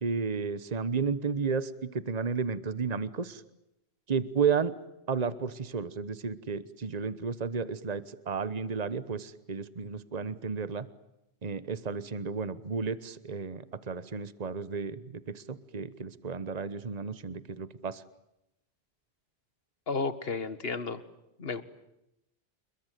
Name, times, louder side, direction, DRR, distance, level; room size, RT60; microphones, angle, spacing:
voice 1, 0.0-3.4 4.1-4.7 5.1-10.9 11.4-18.0, right 5 dB, 40° right, 15 dB, 1.2 m, -32 dB
voice 2, 19.9-21.0 21.4-21.6, left 4 dB, 65° left, 13 dB, 1.9 m, -32 dB
29.0 x 22.0 x 9.2 m, 0.87 s
omnidirectional pair, 1.1 m